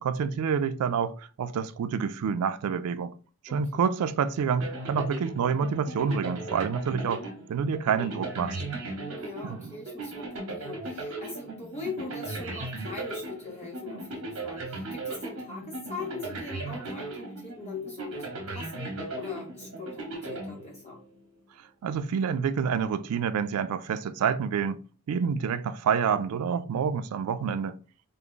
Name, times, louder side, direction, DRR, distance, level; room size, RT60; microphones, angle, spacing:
voice 1, 0.0-3.1 3.4-7.2 7.5-8.6 9.4-9.7 21.8-24.8 25.1-27.8, right 6 dB, 80° right, 0.3 m, -28 dB
voice 2, 3.5-3.8 9.1-21.0, left 4 dB, 30° left, 0.6 m, -41 dB
sound 1, 4.6-21.2, right 2 dB, 60° right, 0.8 m, -37 dB
3.5 x 2.0 x 3.6 m
head